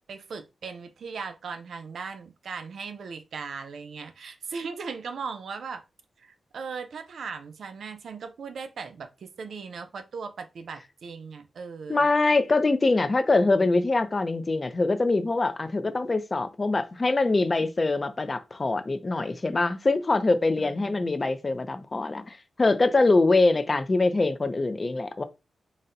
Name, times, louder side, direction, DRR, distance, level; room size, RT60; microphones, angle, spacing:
voice 1, 0.1-5.8 6.2-12.1 20.6-21.2, right 5 dB, 75° right, 0.6 m, -38 dB
voice 2, 11.9-25.2, left 3 dB, 35° left, 0.5 m, -24 dB
4.1 x 2.2 x 3.8 m
cardioid pair, 90°, 0 cm